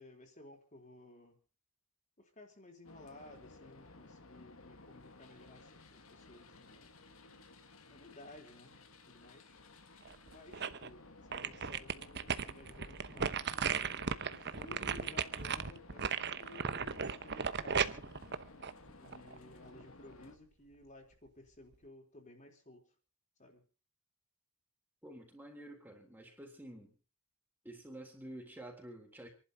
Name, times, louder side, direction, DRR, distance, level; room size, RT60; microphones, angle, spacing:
voice 1, 0.0-1.4 2.2-7.1 7.9-8.8 9.1-9.6 10.3-13.6 14.1-18.1 19.0-23.0 23.4-23.7, left 2 dB, 35° left, 3.9 m, -56 dB
sound 1, 2.8-20.4, left 3 dB, 70° left, 2.0 m, -57 dB
sound 2, 10.1-10.9 11.3-19.4 19.8-19.9, right 6 dB, 50° right, 1.0 m, -36 dB
voice 2, 25.0-26.9 27.6-29.3, right 1 dB, 10° right, 3.6 m, -50 dB
28.0 x 11.5 x 3.9 m
head